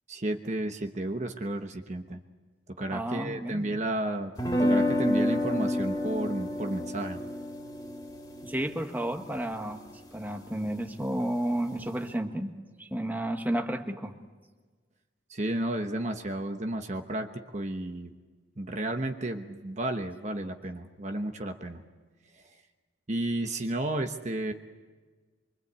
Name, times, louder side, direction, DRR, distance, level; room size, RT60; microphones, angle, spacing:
voice 1, 0.1-2.2 2.8-4.3 4.6-7.2 15.3-18.1 18.6-21.8 23.1-24.5, right 1 dB, 35° right, 5 dB, 1.1 m, -32 dB
voice 2, 2.9-3.7 8.4-9.8 10.1-12.5 12.8-14.1, right 1 dB, 10° right, 4 dB, 1.4 m, -32 dB
sound 1, 4.4-10.4, left 1 dB, 20° left, 2.9 m, -30 dB
25.0 x 24.0 x 8.2 m, 1.4 s
head